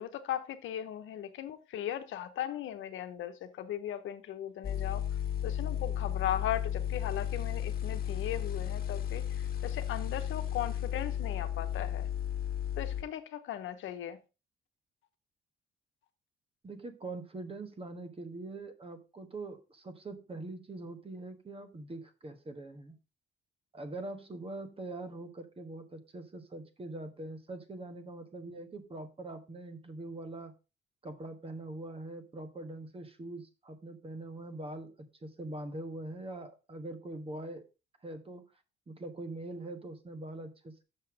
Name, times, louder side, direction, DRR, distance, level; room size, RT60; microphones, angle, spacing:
voice 1, 0.0-5.0 5.4-12.1 12.8-14.2, left 11 dB, 80° left, 1.0 m, -38 dB
sound 1, 4.6-13.0, left 10 dB, 50° left, 1.4 m, -34 dB
voice 2, 16.6-23.0 23.7-30.5 31.0-37.6 38.0-38.4 38.9-40.8, right 2 dB, 30° right, 1.4 m, -43 dB
6.7 x 5.8 x 4.8 m
cardioid pair, 90°, 20 cm